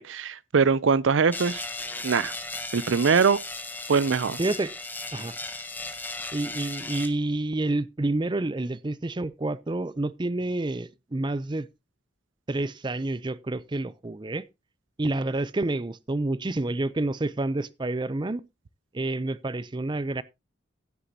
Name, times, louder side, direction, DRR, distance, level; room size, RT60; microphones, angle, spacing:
voice 1, 0.0-1.6 2.0-2.3 2.7-3.4 3.9-4.4, right 5 dB, 80° right, 0.5 m, -22 dB
sound 1, 1.3-7.1, left 2 dB, 10° left, 1.2 m, -36 dB
voice 2, 4.4-4.7 5.1-5.3 6.3-11.7 12.5-14.4 15.0-18.4 18.9-20.2, right 2 dB, 25° right, 0.5 m, -29 dB
16.0 x 8.2 x 2.8 m
head